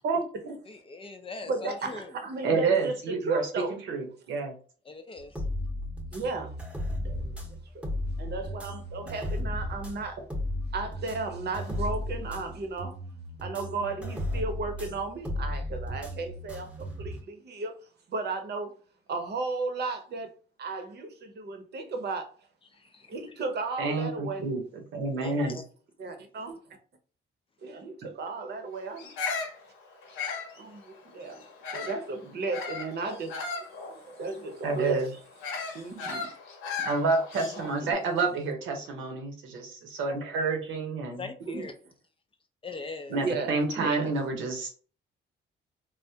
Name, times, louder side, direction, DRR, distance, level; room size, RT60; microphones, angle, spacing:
voice 1, 0.0-0.5 2.4-4.5 23.8-24.6 24.9-25.6 34.6-35.1 36.8-41.2 43.1-44.7, right 3 dB, 85° right, 0.8 m, -29 dB
voice 2, 0.6-2.1 4.8-5.4 22.7-23.1 25.2-25.6 41.2-41.7 42.6-43.2, left 4 dB, 25° left, 0.5 m, -41 dB
voice 3, 1.5-3.8 6.1-6.5 7.0-7.8 8.2-10.2 10.7-13.0 13.4-17.7 18.1-18.7 19.1-20.3 20.6-22.3 23.1-24.5 26.0-26.6 27.6-29.1 30.6-31.4 31.7-33.4 33.9-35.2 35.7-36.3 37.3-38.0 41.5-41.7 43.1-44.1, right 3 dB, 55° right, 0.8 m, -34 dB
sound 1, 5.2-17.2, left 1 dB, 5° right, 0.9 m, -35 dB
Bird vocalization bird call bird song, 29.0-32.1 32.5-37.8, left 4 dB, 90° left, 0.7 m, -36 dB
3.5 x 2.1 x 2.7 m
cardioid pair, 90°, 20 cm